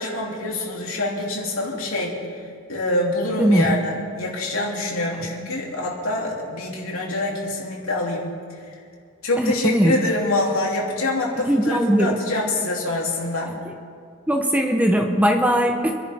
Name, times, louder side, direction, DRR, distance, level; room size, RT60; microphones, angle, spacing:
voice 1, 0.0-2.2 2.7-8.3 9.2-13.5, left 2 dB, 90° left, -2 dB, 3.0 m, -25 dB
voice 2, 3.4-3.8 9.4-9.9 11.5-12.1 13.7-13.8 14.3-15.9, equal, 5° right, 3 dB, 0.9 m, -19 dB
27.0 x 11.0 x 3.6 m, 2.2 s
head